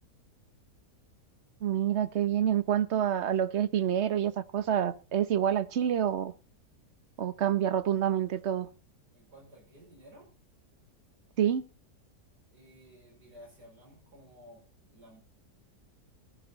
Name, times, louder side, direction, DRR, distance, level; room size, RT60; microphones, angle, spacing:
voice 1, 1.6-6.3 7.2-8.7 11.4-11.6, right 9 dB, 50° right, 1.0 m, -27 dB
voice 2, 9.1-10.3 12.5-14.7 14.9-15.2, equal, 75° right, 6.6 m, -54 dB
15.5 x 12.0 x 4.1 m
omnidirectional pair, 1.8 m